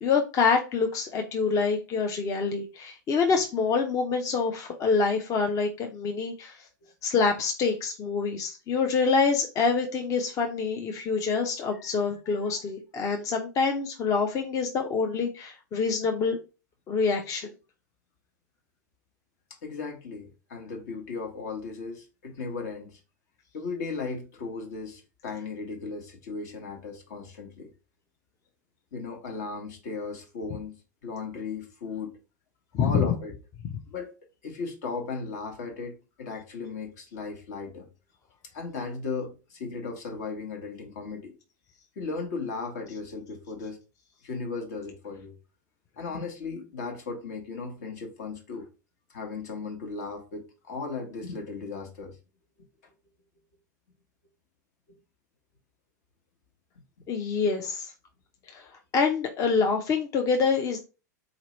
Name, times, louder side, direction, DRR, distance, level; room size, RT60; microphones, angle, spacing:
voice 1, 0.0-6.7 7.0-16.4 16.9-17.5 32.7-33.0 57.1-57.9 58.5-58.7 58.9-60.8, left 5 dB, 35° left, 0.6 m, -26 dB
voice 2, 19.6-23.0 23.5-27.7 28.9-30.8 31.0-32.1 32.8-33.3 33.9-34.1 34.4-37.9 38.5-41.3 42.0-43.8 44.2-45.3 46.0-48.7 49.1-52.1, left 4 dB, 65° left, 1.2 m, -36 dB
4.0 x 2.9 x 3.0 m
hypercardioid pair, 90°, 10 cm